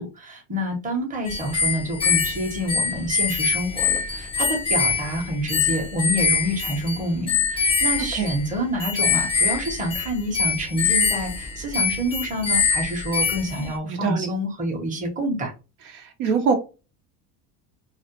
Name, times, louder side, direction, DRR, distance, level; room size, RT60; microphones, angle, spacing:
voice 1, 0.0-15.5, equal, 20° right, 0.8 m, -27 dB
sound 1, 1.3-13.7, left 5 dB, 15° left, 0.3 m, -24 dB
voice 2, 13.8-14.3 15.9-16.5, right 5 dB, 75° right, 0.8 m, -23 dB
2.4 x 2.0 x 2.8 m
supercardioid pair, 115°, 44 cm